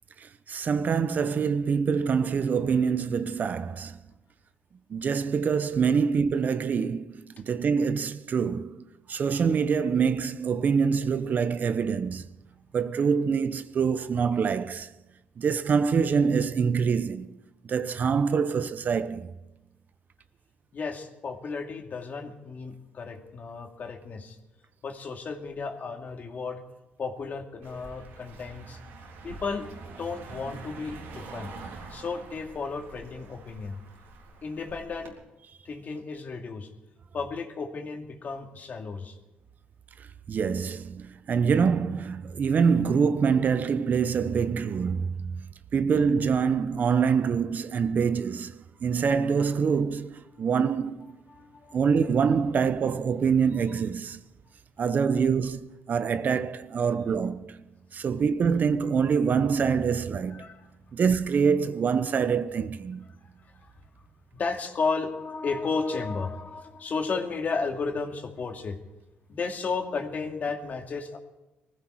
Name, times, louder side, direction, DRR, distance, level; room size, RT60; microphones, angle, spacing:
voice 1, 0.2-4.0 4.9-12.2 12.7-14.9 15.4-17.4 17.6-19.3 40.0-45.5 45.7-51.2 51.7-54.2 54.8-57.6 57.9-60.4 60.9-63.0, right 6 dB, 50° right, 0.9 m, -25 dB
voice 2, 20.7-24.4 24.8-26.6 27.0-28.8 29.2-29.7 30.0-31.5 31.9-33.8 34.4-35.1 35.6-36.7 37.1-39.2 50.3-50.4 51.3-51.8 60.3-60.7 63.6-63.7 64.3-68.8 69.3-71.2, left 4 dB, 50° left, 2.4 m, -33 dB
Car passing by, 27.6-35.1, right 3 dB, 85° right, 3.8 m, -45 dB
20.0 x 15.5 x 4.7 m
cardioid pair, 75°, 4 cm